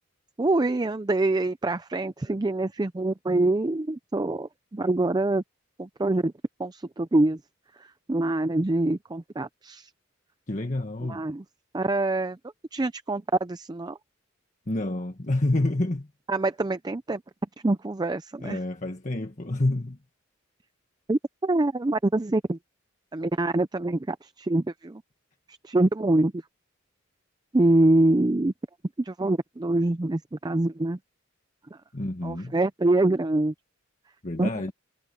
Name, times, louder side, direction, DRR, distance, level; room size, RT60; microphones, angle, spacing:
voice 1, 0.4-5.4 5.8-6.3 6.6-7.4 7.8-9.9 11.0-11.4 11.7-12.4 12.7-14.0 16.3-17.2 17.6-18.6 21.1-22.6 23.1-25.0 25.5-26.3 27.5-28.5 29.0-31.0 31.7-31.8 32.2-33.5 34.4-34.7, right 2 dB, 20° right, 0.4 m, -25 dB
voice 2, 10.5-11.2 14.7-16.1 18.4-20.0 31.9-32.5 34.2-34.7, left 2 dB, 35° left, 1.4 m, -28 dB
head